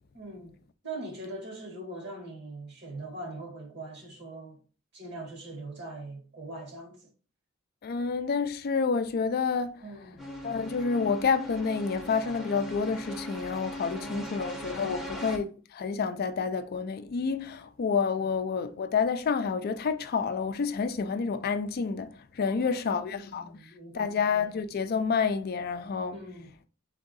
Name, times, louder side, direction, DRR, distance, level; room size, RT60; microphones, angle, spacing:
voice 1, 0.1-0.5 0.8-4.6 4.9-7.1 9.8-10.2 13.8-14.4 14.8-15.2 22.4-24.2 26.1-26.5, right 2 dB, 55° right, 1.6 m, -42 dB
voice 2, 7.8-9.8 10.4-23.5 23.9-26.2, left 5 dB, 50° left, 0.4 m, -29 dB
sound 1, 10.2-15.4, equal, ahead, 0.8 m, -40 dB
3.7 x 3.5 x 3.9 m
head